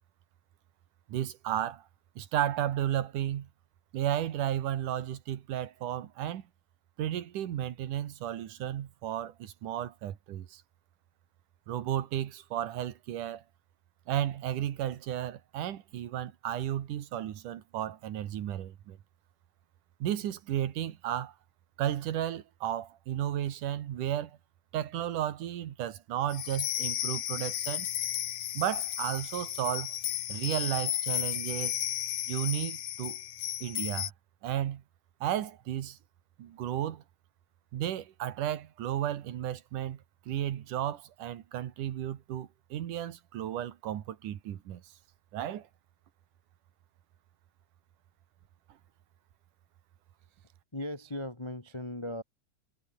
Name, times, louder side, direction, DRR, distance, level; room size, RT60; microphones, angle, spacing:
voice 1, 1.1-1.8 2.2-3.5 3.9-6.4 7.0-10.6 11.7-13.4 14.1-19.0 20.0-21.3 21.8-24.4 24.7-27.9 28.5-30.0 30.3-31.8 32.3-33.2 33.6-34.1 34.4-34.8 35.2-36.0 36.4-37.0 37.7-44.8 45.3-45.7, right 11 dB, 85° right, 3.1 m, -33 dB
sound 1, 26.3-34.1, left 12 dB, 70° left, 2.7 m, -34 dB
Chime, 27.6-31.2 31.4-31.5, right 6 dB, 65° right, 5.4 m, -57 dB
voice 2, 50.3-52.2, left 1 dB, 30° left, 0.5 m, -39 dB
omnidirectional pair, 3.5 m